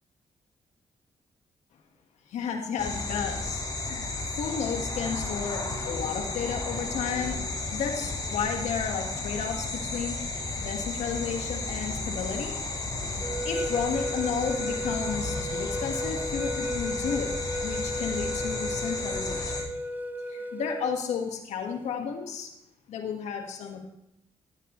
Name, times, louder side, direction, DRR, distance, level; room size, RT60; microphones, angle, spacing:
voice 1, 2.3-7.4 7.7-10.2 10.6-12.5 13.4-17.3 17.6-19.6 20.3-22.5 22.9-23.8, left 6 dB, 85° left, 3 dB, 1.7 m, -32 dB
sound 1, 2.8-19.6, left 2 dB, 35° left, 4.2 m, -33 dB
sound 2, 13.2-21.0, equal, 15° right, 0.9 m, -34 dB
14.5 x 9.3 x 3.2 m, 0.82 s
cardioid pair, 65°, 11 cm